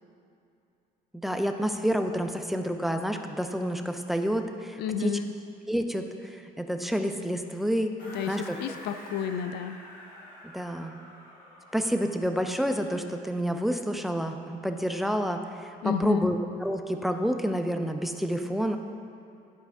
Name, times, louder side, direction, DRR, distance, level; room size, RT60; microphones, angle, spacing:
voice 1, 1.2-5.2 5.7-7.9 8.3-8.6 10.4-10.9 11.7-16.4 16.6-18.8, equal, ahead, 5 dB, 0.4 m, -29 dB
voice 2, 4.8-5.3 8.0-9.8 15.8-16.3, left 7 dB, 75° left, 10 dB, 0.4 m, -31 dB
sound 1, 8.0-12.4, left 1 dB, 55° left, 1.7 m, -47 dB
11.5 x 4.5 x 3.5 m, 2.6 s
cardioid pair, 110°, 17 cm